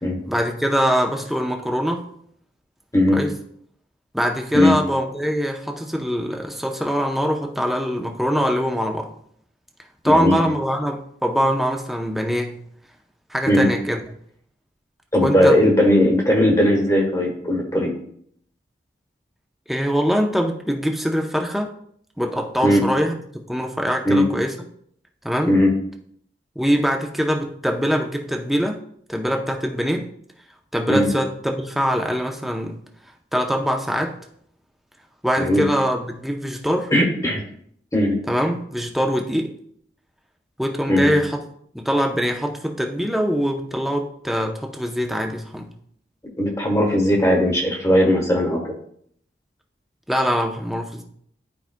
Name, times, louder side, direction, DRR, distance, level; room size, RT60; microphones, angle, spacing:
voice 1, 0.3-2.0 3.1-3.3 4.1-9.1 10.0-12.6 13.3-14.0 15.2-15.6 19.7-21.7 22.2-24.5 25.2-25.5 26.6-28.8 29.1-30.1 30.7-32.8 33.3-34.2 35.2-36.9 38.3-39.5 40.6-41.4 41.7-45.7 50.1-51.0, equal, ahead, 2 dB, 0.6 m, -23 dB
voice 2, 10.0-10.4 13.5-13.7 15.1-17.9 22.6-22.8 24.0-24.3 25.5-25.7 30.9-31.1 35.4-35.6 36.9-37.4 37.9-38.2 40.9-41.1 46.4-48.6, left 1 dB, 20° left, 0 dB, 1.1 m, -18 dB
11.5 x 4.8 x 2.2 m, 0.67 s
head